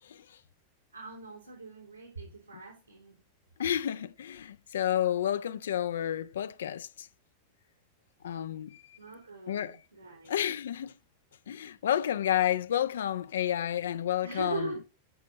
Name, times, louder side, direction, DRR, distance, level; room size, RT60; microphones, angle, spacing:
voice 1, 0.9-3.2 9.0-10.4 14.2-14.8, right 3 dB, 85° right, 3.4 m, -40 dB
voice 2, 3.6-7.1 8.2-8.8 9.5-9.8 10.3-10.9 11.5-14.7, left 10 dB, 65° left, 0.5 m, -30 dB
14.0 x 6.2 x 3.9 m
figure-of-eight pair, 90°, 0 cm